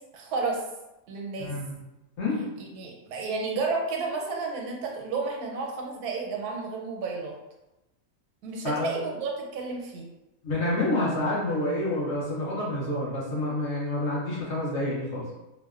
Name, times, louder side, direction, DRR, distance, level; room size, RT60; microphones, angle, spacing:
voice 1, 0.1-0.6 1.1-1.5 2.6-7.3 8.4-10.1, right 4 dB, 90° right, 0 dB, 1.1 m, -32 dB
voice 2, 1.4-1.8 2.2-2.4 8.6-8.9 10.4-15.2, left 1 dB, 60° left, -6 dB, 0.8 m, -28 dB
2.8 x 2.1 x 2.3 m, 0.98 s
omnidirectional pair, 1.6 m